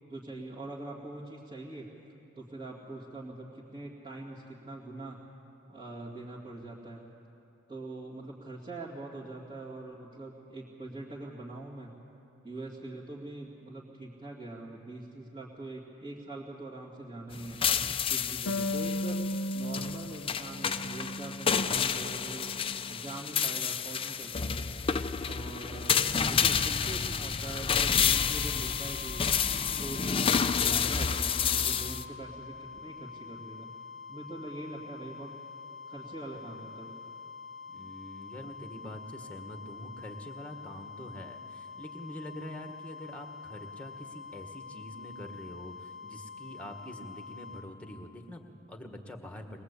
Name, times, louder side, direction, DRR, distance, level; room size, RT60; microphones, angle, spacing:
voice 1, 0.1-1.9 2.3-5.2 5.7-7.0 7.7-11.9 12.4-17.6 18.1-19.2 19.5-22.6 22.9-24.9 25.2-29.3 29.8-33.7 34.1-35.3 35.9-37.0, right 2 dB, 25° right, -6 dB, 2.5 m, -43 dB
sound 1, 17.3-32.0, left 7 dB, 25° left, 0.5 m, -29 dB
Harp, 18.5-21.8 22.2-23.3, left 1 dB, 80° left, 0.9 m, -36 dB
sound 2, 28.1-47.7, left 5 dB, 55° right, 2.2 m, -46 dB
voice 2, 37.7-49.6, left 1 dB, 5° left, 4 dB, 1.6 m, -45 dB
21.5 x 21.0 x 8.4 m, 2.7 s
head